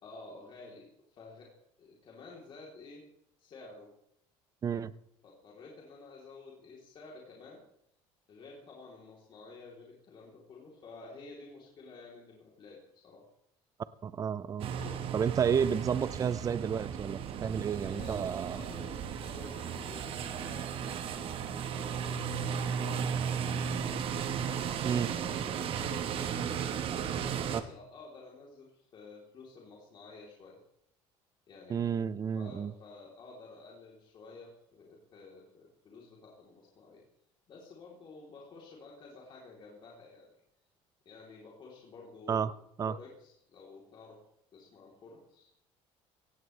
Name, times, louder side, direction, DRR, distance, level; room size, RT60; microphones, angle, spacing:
voice 1, 0.0-1.5 1.8-3.1 3.4-3.9 5.2-7.6 8.3-13.2 14.8-15.2 17.8-23.5 24.4-30.6 31.5-32.0 32.3-37.0 37.5-40.3 41.1-42.6 42.9-44.2 44.5-45.5, left 3 dB, 45° left, -3 dB, 3.6 m, -51 dB
voice 2, 14.0-14.7 15.1-18.6 24.8-25.1 31.7-32.7 42.3-42.5 42.8-43.0, right 7 dB, 30° right, 17 dB, 0.6 m, -31 dB
sound 1, 14.6-27.6, right 7 dB, 50° right, 1.3 m, -35 dB
17.0 x 16.0 x 3.4 m, 0.74 s
cardioid pair, 115°, 12 cm